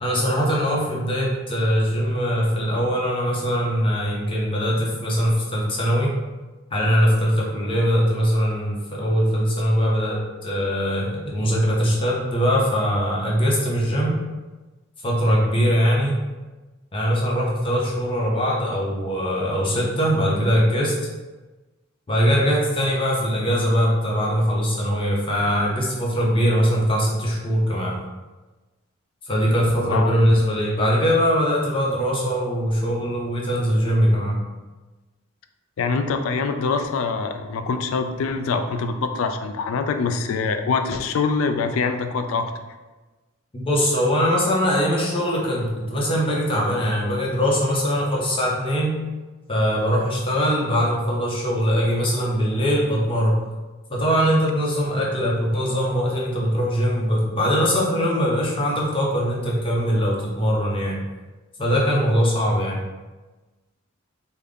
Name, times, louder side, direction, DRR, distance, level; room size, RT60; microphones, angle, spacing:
voice 1, 0.0-6.1 6.7-14.2 15.0-16.2 16.9-20.9 22.1-27.9 29.3-34.4 43.5-49.0 49.5-53.3 53.9-61.0 61.6-62.8, equal, 25° left, -3 dB, 0.6 m, -21 dB
voice 2, 35.8-42.5, left 4 dB, 70° left, 7 dB, 0.3 m, -24 dB
3.6 x 2.1 x 3.5 m, 1.2 s
head